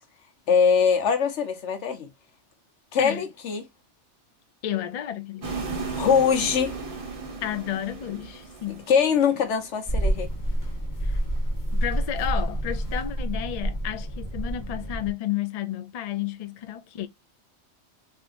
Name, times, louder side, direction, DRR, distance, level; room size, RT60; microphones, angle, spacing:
voice 1, 0.5-2.1 2.9-3.6 5.9-6.7 8.9-10.3, left 6 dB, 80° left, 1.2 m, -22 dB
voice 2, 4.6-5.7 7.4-8.9 11.0-11.2 11.7-17.1, left 11 dB, 65° left, 0.3 m, -32 dB
sound 1, 5.4-9.7, right 4 dB, 35° right, 0.8 m, -35 dB
sound 2, 9.9-15.1, right 1 dB, 20° left, 0.9 m, -28 dB
3.3 x 2.8 x 2.4 m
omnidirectional pair, 1.2 m